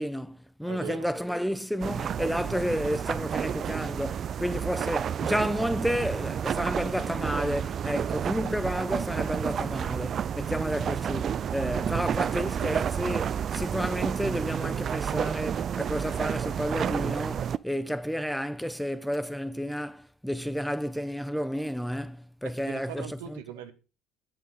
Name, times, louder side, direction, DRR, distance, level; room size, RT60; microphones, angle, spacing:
voice 1, 0.0-23.4, equal, ahead, 0.9 m, -31 dB
voice 2, 0.6-1.1 22.7-23.7, right 9 dB, 85° right, 1.0 m, -40 dB
sound 1, 1.8-17.6, right 8 dB, 50° right, 0.4 m, -30 dB
9.2 x 8.0 x 4.9 m
hypercardioid pair, 65°, 0 cm